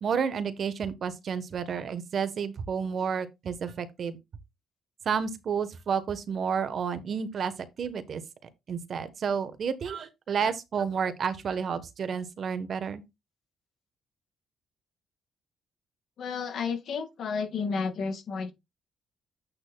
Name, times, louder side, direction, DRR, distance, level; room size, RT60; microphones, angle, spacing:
voice 1, 0.0-4.2 5.0-7.5 7.8-8.2 8.7-13.0, right 6 dB, 55° right, 1.1 m, -30 dB
voice 2, 16.2-18.5, left 5 dB, 65° left, 1.7 m, -31 dB
9.0 x 6.1 x 2.3 m
cardioid pair, 90°, 0 cm